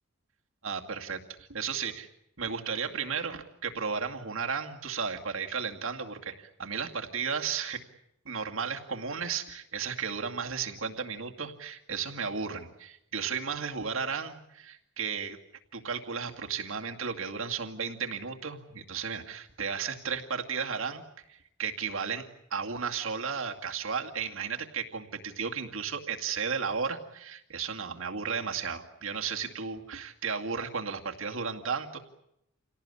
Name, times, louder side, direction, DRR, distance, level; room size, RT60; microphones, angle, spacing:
voice 1, 0.6-2.1 2.4-7.8 8.3-15.4 15.7-21.0 21.3-22.3 22.5-32.0, right 6 dB, 85° right, 3 dB, 2.3 m, -34 dB
28.0 x 18.0 x 9.9 m, 0.82 s
head